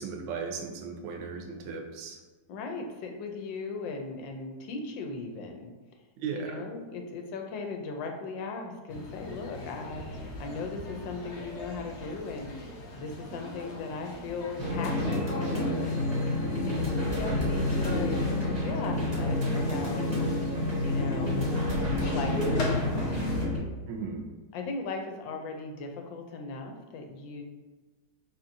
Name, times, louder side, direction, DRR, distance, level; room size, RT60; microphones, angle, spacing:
voice 1, 0.0-2.2 6.2-6.6 23.9-24.2, right 5 dB, 80° right, 3 dB, 1.3 m, -36 dB
voice 2, 2.5-5.7 6.3-16.3 16.6-20.1 20.8-21.5 22.0-23.3 24.5-27.4, left 4 dB, 85° left, 3 dB, 1.3 m, -38 dB
sound 1, 8.9-23.5, left 1 dB, 60° left, 0.7 m, -40 dB
sound 2, 14.6-23.6, left 1 dB, 25° right, 0.5 m, -28 dB
4.3 x 3.8 x 2.6 m, 1.3 s
omnidirectional pair, 2.0 m